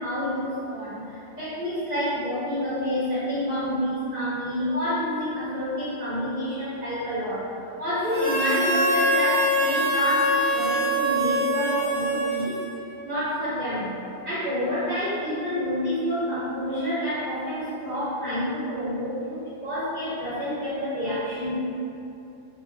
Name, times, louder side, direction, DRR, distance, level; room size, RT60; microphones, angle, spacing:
voice 1, 0.0-12.6 13.0-14.0 14.2-21.6, equal, 45° right, -11 dB, 1.1 m, -28 dB
Harmonica, 8.1-12.9, equal, 65° right, 1.2 m, -24 dB
3.8 x 2.1 x 3.6 m, 2.8 s
omnidirectional pair, 1.3 m